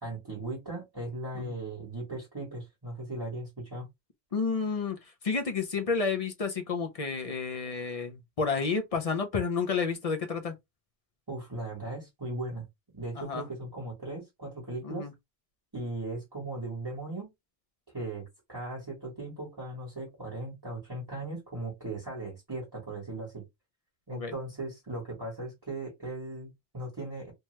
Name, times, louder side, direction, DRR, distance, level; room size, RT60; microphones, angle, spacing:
voice 1, 0.0-3.9 11.3-12.6 12.9-15.1 15.7-17.3 17.9-23.4 24.1-27.3, right 2 dB, 25° right, 1.2 m, -38 dB
voice 2, 4.3-5.0 5.2-10.5 13.2-13.5 14.8-15.1 24.1-24.3, left 5 dB, 45° left, 0.5 m, -30 dB
2.8 x 2.2 x 3.0 m
omnidirectional pair, 1.1 m